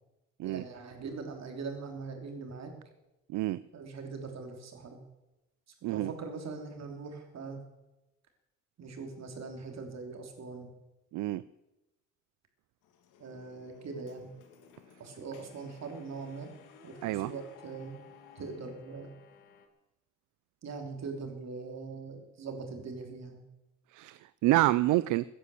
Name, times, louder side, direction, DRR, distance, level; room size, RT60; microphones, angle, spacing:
voice 1, 0.4-2.7 3.7-5.0 5.9-7.6 8.8-10.7 13.2-14.3 15.0-16.5 16.8-18.0 18.3-19.1 20.6-23.4, right 4 dB, 60° right, 4 dB, 3.3 m, -41 dB
sound 1, 12.8-19.7, left 6 dB, 90° left, 1.9 m, -56 dB
voice 2, 23.9-25.2, right 17 dB, 80° right, 17 dB, 0.5 m, -28 dB
15.5 x 10.0 x 7.0 m, 0.99 s
cardioid pair, 90°, 30 cm